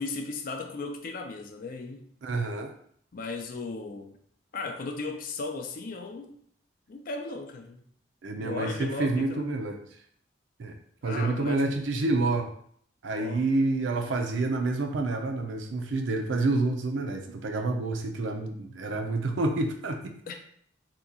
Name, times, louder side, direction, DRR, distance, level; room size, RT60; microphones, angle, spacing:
voice 1, 0.0-2.1 3.1-4.2 4.5-6.4 6.9-7.8 8.4-9.4 11.0-11.6 13.1-13.4 20.3-20.4, left 3 dB, 50° left, 4 dB, 0.4 m, -36 dB
voice 2, 2.2-2.7 8.2-9.8 10.6-10.8 11.0-12.5 13.0-20.1, right 2 dB, 75° right, 4 dB, 0.5 m, -28 dB
2.9 x 2.3 x 3.7 m, 0.63 s
head